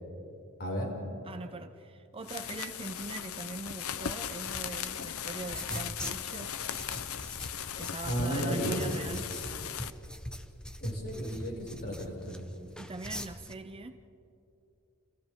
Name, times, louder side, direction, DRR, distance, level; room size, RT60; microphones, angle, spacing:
voice 1, 0.6-0.9 8.1-8.8 10.8-12.5, equal, 45° left, -2 dB, 6.1 m, -33 dB
voice 2, 1.2-6.6 7.8-9.3 12.8-14.1, right 3 dB, 25° right, 9 dB, 0.6 m, -42 dB
sound 1, 2.2-9.9, left 9 dB, 70° left, 0.7 m, -38 dB
sound 2, 4.4-13.5, equal, 5° left, 1.0 m, -43 dB
30.0 x 30.0 x 3.7 m, 2.7 s
head